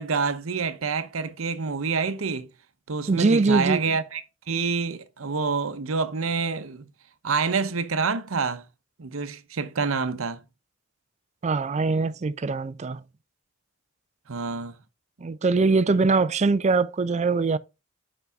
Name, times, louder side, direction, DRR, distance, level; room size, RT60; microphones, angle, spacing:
voice 1, 0.0-2.5 2.9-6.9 7.2-8.6 9.0-10.4 14.3-14.7, right 5 dB, 85° right, 0.8 m, -27 dB
voice 2, 3.1-3.8 11.4-13.0 15.2-17.6, right 3 dB, 35° right, 0.4 m, -22 dB
8.3 x 5.4 x 3.5 m
head